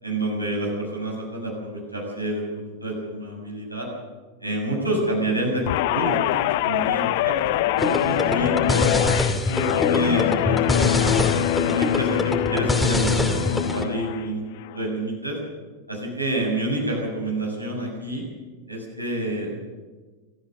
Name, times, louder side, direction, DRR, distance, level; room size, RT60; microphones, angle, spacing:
voice 1, 0.0-2.5 2.8-3.9 4.4-6.4 6.6-7.3 7.8-9.0 9.5-11.1 11.6-14.4 14.7-15.4 15.9-18.2 18.7-19.7, right 1 dB, 85° right, -1 dB, 6.9 m, -28 dB
Guitar, 5.7-14.2 14.6-15.0, left 13 dB, 50° left, 0.8 m, -24 dB
sound 1, 7.8-13.8, left 2 dB, 5° left, 2.5 m, -24 dB
26.5 x 14.5 x 6.7 m, 1.3 s
figure-of-eight pair, 90°, 0 cm